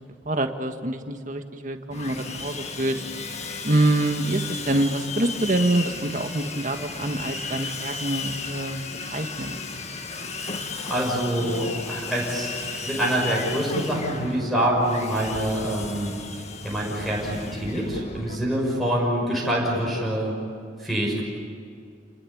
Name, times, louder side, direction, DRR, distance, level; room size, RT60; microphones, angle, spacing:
voice 1, 0.2-3.0 3.6-9.6, right 1 dB, 40° right, 6 dB, 1.7 m, -26 dB
Sawing, 1.9-18.4, left 4 dB, 35° left, 1.9 m, -35 dB
voice 2, 10.9-16.2 16.6-20.4 20.8-21.2, right 1 dB, ahead, -3 dB, 6.3 m, -25 dB
29.5 x 20.5 x 8.7 m, 2.3 s
head